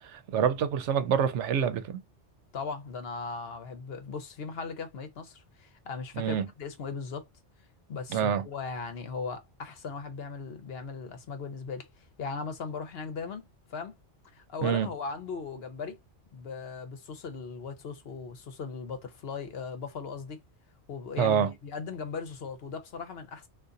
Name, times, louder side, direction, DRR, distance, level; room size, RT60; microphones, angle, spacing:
voice 1, 0.0-1.9 6.2-6.5 8.1-8.4 14.6-14.9 21.2-21.5, right 8 dB, 90° right, 0.9 m, -26 dB
voice 2, 2.5-7.3 7.9-11.9 12.2-13.4 13.7-13.9 14.3-16.0 16.3-20.4 20.9-23.5, left 5 dB, 60° left, 1.0 m, -38 dB
3.7 x 2.5 x 2.6 m
omnidirectional pair, 1.2 m